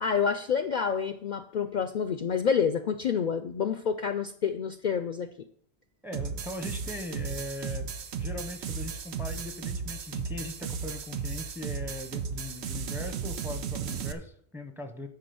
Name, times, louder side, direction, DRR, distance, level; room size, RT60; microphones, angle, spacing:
voice 1, 0.0-5.3, left 6 dB, 55° left, 10 dB, 0.5 m, -28 dB
voice 2, 6.0-15.1, left 1 dB, ahead, 7 dB, 0.7 m, -40 dB
sound 1, 6.1-14.1, right 6 dB, 80° right, 1.0 m, -35 dB
10.5 x 4.1 x 6.9 m, 0.63 s
omnidirectional pair, 1.1 m